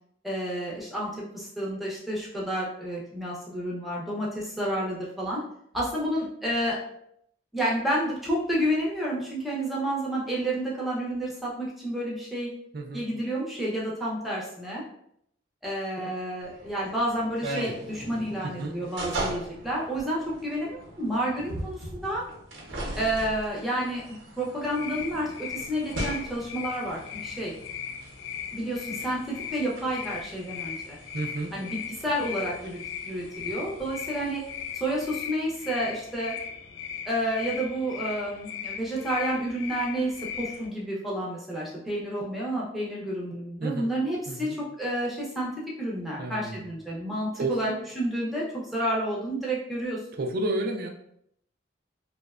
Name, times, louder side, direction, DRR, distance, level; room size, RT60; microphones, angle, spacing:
voice 1, 0.2-5.4 5.7-6.8 7.5-12.5 12.9-14.8 15.6-22.2 23.0-24.0 24.4-27.5 28.5-31.0 31.5-32.8 33.0-34.4 34.7-36.3 37.1-45.5 45.8-47.7 48.0-50.0, right 1 dB, ahead, -5 dB, 0.5 m, -30 dB
sound 1, 16.4-35.1, right 1 dB, 90° right, 0.7 m, -40 dB
voice 2, 18.4-18.7 31.1-31.5 43.6-43.9 44.3-44.6 46.2-46.7 47.3-47.8 50.2-50.9, right 2 dB, 50° right, 3 dB, 0.3 m, -31 dB
sound 2, 24.6-40.7, left 8 dB, 70° left, 0.3 m, -38 dB
2.7 x 2.1 x 2.3 m, 0.72 s
head